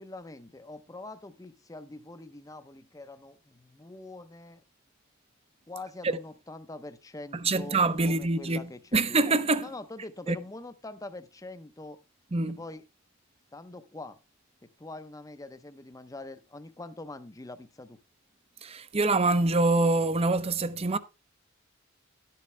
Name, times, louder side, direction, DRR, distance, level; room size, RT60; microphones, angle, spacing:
voice 1, 0.0-4.6 5.7-8.8 9.1-9.2 9.6-12.0 12.5-12.8 13.5-14.2 14.6-18.0, left 2 dB, 15° left, 0.6 m, -44 dB
voice 2, 7.3-8.6 8.9-9.7 10.3-10.4 12.3-12.6 18.6-21.0, right 3 dB, 30° right, 0.6 m, -25 dB
11.5 x 8.5 x 3.2 m
head